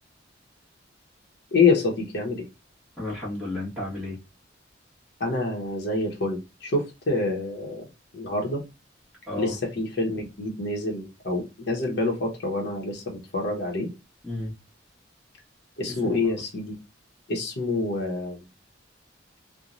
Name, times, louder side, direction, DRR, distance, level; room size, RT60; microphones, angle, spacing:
voice 1, 1.5-2.4 5.2-7.8 8.1-8.6 9.4-13.9 15.8-16.8 17.3-18.4, left 3 dB, 60° left, 0.8 m, -26 dB
voice 2, 3.0-4.2 9.3-9.5 14.2-14.5 16.0-16.3, left 1 dB, ahead, 1.3 m, -32 dB
3.0 x 2.1 x 2.4 m
head